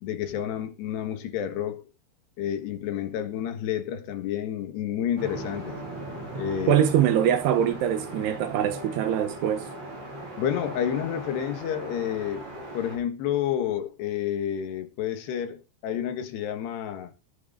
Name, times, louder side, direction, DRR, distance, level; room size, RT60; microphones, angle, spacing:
voice 1, 0.0-1.8 2.4-5.8 6.4-6.8 10.4-12.5 12.7-17.1, left 10 dB, 90° left, 3.8 m, -30 dB
sound 1, 5.2-13.0, right 2 dB, 45° right, 6.8 m, -38 dB
voice 2, 6.7-9.7, right 10 dB, 80° right, 3.3 m, -23 dB
19.0 x 7.8 x 3.9 m
omnidirectional pair, 4.7 m